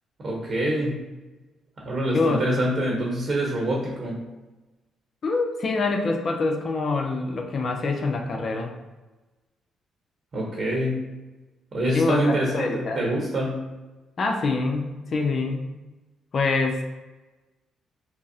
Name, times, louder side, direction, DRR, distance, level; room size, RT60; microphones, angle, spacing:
voice 1, 0.2-1.0 1.8-4.2 10.3-11.0 11.7-13.6, right 1 dB, 45° right, -2 dB, 0.9 m, -25 dB
voice 2, 5.2-8.7 11.9-13.0 14.2-15.7 16.3-16.8, left 3 dB, 50° left, 3 dB, 0.5 m, -25 dB
5.9 x 2.0 x 2.7 m, 1.2 s
cardioid pair, 90°, 0 cm